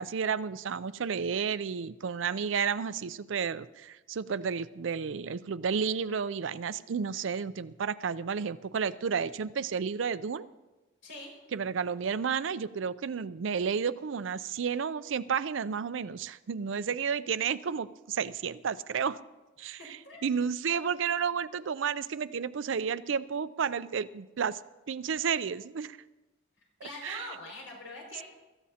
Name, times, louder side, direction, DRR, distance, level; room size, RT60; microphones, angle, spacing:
voice 1, 0.0-10.5 11.5-19.2 19.6-24.6 24.9-26.0 27.0-27.3 28.1-28.2, right 6 dB, 85° right, 15 dB, 0.5 m, -32 dB
voice 2, 11.0-11.3 19.8-20.3 26.8-28.2, left 2 dB, 90° left, -1 dB, 5.6 m, -43 dB
24.0 x 14.0 x 2.8 m, 1.1 s
head